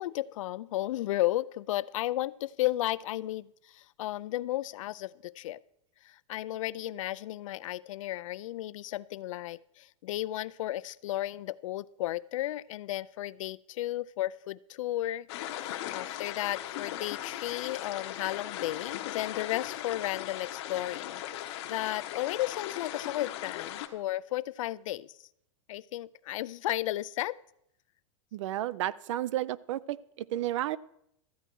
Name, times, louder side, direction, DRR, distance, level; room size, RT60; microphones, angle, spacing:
voice 1, 0.0-5.6 6.0-15.3 15.5-25.1 25.7-27.4, left 15 dB, 80° left, 19 dB, 0.4 m, -34 dB
sound 1, 15.3-23.9, left 12 dB, 55° left, 0.9 m, -38 dB
voice 2, 28.3-30.8, right 13 dB, 70° right, 21 dB, 0.4 m, -32 dB
13.5 x 9.1 x 4.5 m, 0.76 s
supercardioid pair, 165°, 16 cm